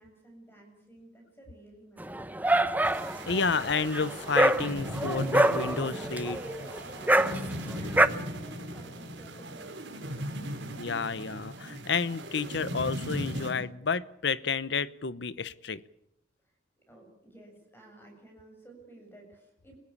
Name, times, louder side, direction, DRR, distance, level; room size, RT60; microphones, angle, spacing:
voice 1, 0.0-2.8 7.0-10.2 10.5-10.9 16.9-19.8, right 2 dB, 10° left, 7.4 m, -52 dB
Dog, 2.0-8.1, right 1 dB, 10° right, 0.8 m, -26 dB
sound 1, 2.8-13.5, equal, 70° right, 4.7 m, -38 dB
voice 2, 3.3-6.4 10.8-15.8, left 5 dB, 60° left, 0.8 m, -31 dB
26.0 x 16.0 x 8.5 m
head